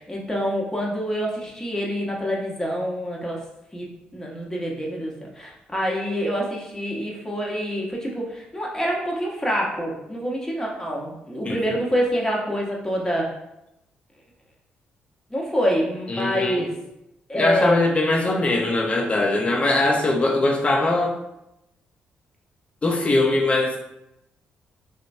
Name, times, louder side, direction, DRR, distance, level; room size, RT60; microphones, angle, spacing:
voice 1, 0.0-3.4 3.7-13.3 15.3-16.7 17.3-17.8, equal, 15° left, -2 dB, 0.9 m, -26 dB
voice 2, 16.1-16.7 17.3-21.2 22.8-23.8, left 2 dB, 30° left, 1 dB, 0.6 m, -21 dB
2.9 x 2.1 x 2.6 m, 0.85 s
supercardioid pair, 55°, 4 cm